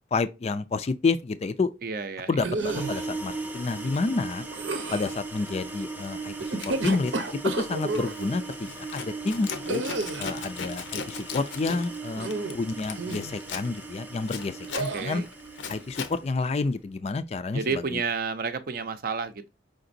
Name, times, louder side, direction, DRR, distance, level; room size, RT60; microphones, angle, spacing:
voice 1, 0.1-1.7 2.3-4.4 4.9-7.1 7.4-9.8 10.2-12.3 12.5-15.2 15.7-18.0, left 3 dB, 35° left, 0.3 m, -29 dB
voice 2, 1.8-2.4 12.2-12.4 14.9-15.3 17.5-19.5, right 5 dB, 50° right, 0.5 m, -31 dB
sound 1, 2.4-3.0 4.5-5.2 6.4-8.1 9.7-10.4 12.1-12.6 13.0-13.4 14.7-15.2, right 3 dB, 90° right, 0.8 m, -31 dB
sound 2, 2.5-16.5, right 3 dB, 10° right, 0.6 m, -38 dB
Zipper (clothing), 3.0-3.2 3.7-5.1 5.4-5.7 6.0-16.2, left 6 dB, 85° left, 0.7 m, -39 dB
5.1 x 3.8 x 2.6 m
head